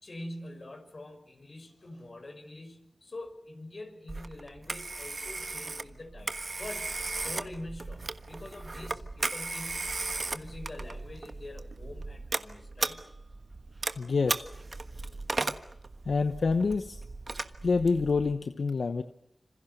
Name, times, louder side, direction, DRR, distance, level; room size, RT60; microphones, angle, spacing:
voice 1, 0.0-6.9 7.2-9.9 10.3-13.0, left 1 dB, 60° left, 7 dB, 5.7 m, -45 dB
Telephone, 4.1-18.3, right 3 dB, 60° right, 1.4 m, -36 dB
voice 2, 14.0-14.4 16.1-17.0 17.6-19.0, left 4 dB, 85° left, 9 dB, 0.9 m, -27 dB
27.0 x 26.5 x 6.7 m, 0.74 s
cardioid pair, 45°, 0 cm